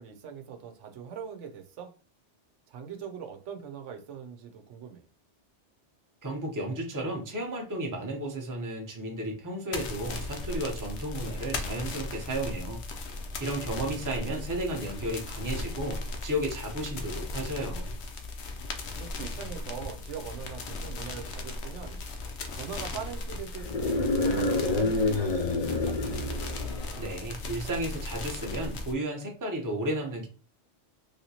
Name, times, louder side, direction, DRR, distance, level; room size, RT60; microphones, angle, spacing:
voice 1, 0.0-1.9 2.7-5.0 13.3-14.0 19.0-22.0 22.6-26.0, right 7 dB, 80° right, 0.9 m, -41 dB
voice 2, 6.2-12.8 13.4-17.9 27.0-30.3, right 1 dB, 20° right, 0.7 m, -33 dB
sound 1, 9.7-28.9, left 2 dB, 65° left, 0.9 m, -37 dB
sound 2, 23.6-27.2, left 2 dB, 50° left, 0.5 m, -28 dB
3.3 x 2.8 x 2.8 m
omnidirectional pair, 1.2 m